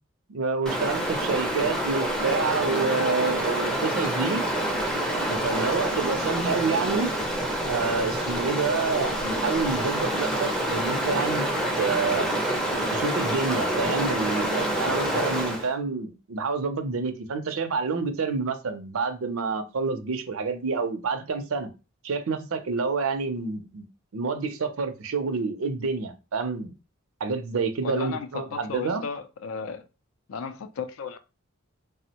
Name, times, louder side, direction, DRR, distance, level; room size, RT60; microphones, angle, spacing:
voice 1, 0.3-4.4 5.3-7.1 7.7-11.4 11.8-12.3 12.9-21.7 22.0-23.9 24.1-26.7 27.2-29.0, right 4 dB, 80° right, 0.5 m, -28 dB
Stream, 0.7-15.7, right 1 dB, 5° left, 0.4 m, -27 dB
voice 2, 27.8-29.8 30.3-31.2, left 5 dB, 75° left, 0.4 m, -34 dB
3.4 x 2.0 x 2.8 m
head